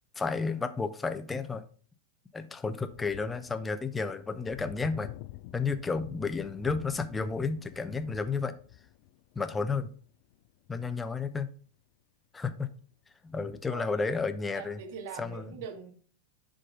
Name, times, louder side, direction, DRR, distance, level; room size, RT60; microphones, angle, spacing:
voice 1, 0.2-1.6 2.3-5.1 5.5-8.5 9.3-9.9 10.7-11.5 12.3-12.7 13.2-14.8 15.2-15.6, left 4 dB, 10° left, 9 dB, 0.7 m, -32 dB
sound 1, 2.9-11.4 12.9-13.0, left 15 dB, 45° left, 0.4 m, -48 dB
voice 2, 14.5-15.9, right 7 dB, 50° right, 1 dB, 2.2 m, -42 dB
10.5 x 3.9 x 3.8 m, 0.43 s
figure-of-eight pair, 90°, 0 cm